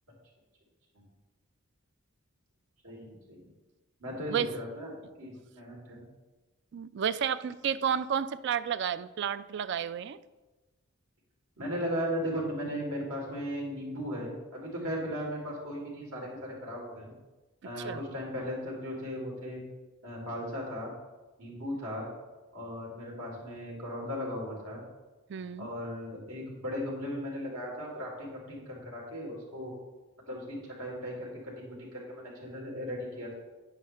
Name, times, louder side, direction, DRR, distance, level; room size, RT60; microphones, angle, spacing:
voice 1, 2.8-3.4 4.0-6.0 11.6-17.1 17.6-19.6 20.0-20.9 21.4-22.1 22.5-24.8 25.6-29.7 30.3-33.3, equal, 85° right, -3 dB, 3.4 m, -37 dB
voice 2, 6.7-10.2 14.8-14.9 17.8-18.0 25.3-25.7, right 8 dB, 55° right, 15 dB, 0.3 m, -31 dB
9.8 x 9.2 x 3.3 m, 1.2 s
head